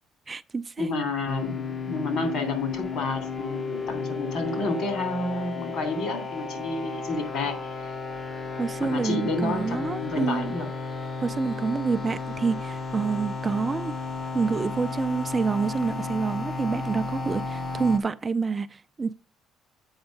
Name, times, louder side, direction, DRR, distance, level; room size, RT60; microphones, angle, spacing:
voice 1, 0.3-0.9 8.6-10.5 11.2-14.0 14.3-19.1, right 5 dB, 25° right, 0.4 m, -27 dB
voice 2, 0.8-7.9 8.8-10.7, left 2 dB, 65° left, 2.9 m, -30 dB
sound 1, 1.3-18.0, left 4 dB, 30° left, 0.7 m, -33 dB
8.0 x 5.5 x 5.2 m
cardioid pair, 125°, 0 cm